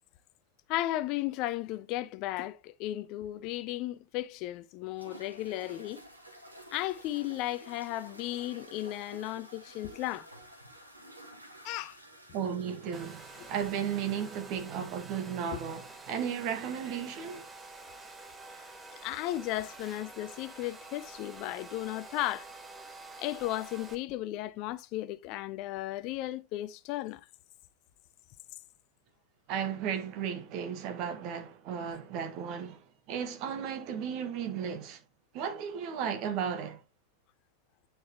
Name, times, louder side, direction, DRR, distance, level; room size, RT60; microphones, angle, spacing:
voice 1, 0.7-6.0 6.7-10.3 11.6-12.0 15.5-15.6 18.6-18.7 19.0-22.5 23.2-27.2, left 15 dB, 40° left, 0.5 m, -35 dB
sound 1, 5.0-14.6, right 1 dB, 85° right, 1.6 m, -52 dB
voice 2, 12.3-17.5 29.5-35.0 35.3-36.8, right 8 dB, 40° right, 1.4 m, -35 dB
Domestic sounds home sounds, 12.9-24.0, right 3 dB, 15° right, 1.1 m, -48 dB
9.3 x 4.7 x 3.0 m
figure-of-eight pair, 90°, 0 cm